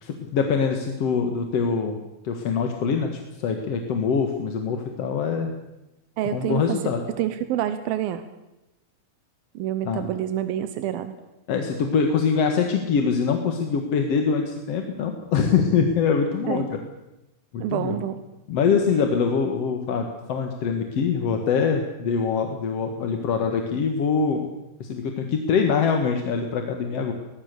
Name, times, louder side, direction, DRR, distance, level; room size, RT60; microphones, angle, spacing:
voice 1, 0.0-2.0 2.2-5.5 6.3-7.0 9.8-10.1 11.5-16.8 17.5-18.0 18.5-24.5 24.8-27.1, left 6 dB, 50° left, 4 dB, 2.3 m, -24 dB
voice 2, 6.2-6.8 7.1-8.2 9.5-11.1 16.5-16.7 17.6-18.2, right 11 dB, 85° right, 11 dB, 2.8 m, -27 dB
22.5 x 20.5 x 6.8 m, 0.95 s
omnidirectional pair, 4.1 m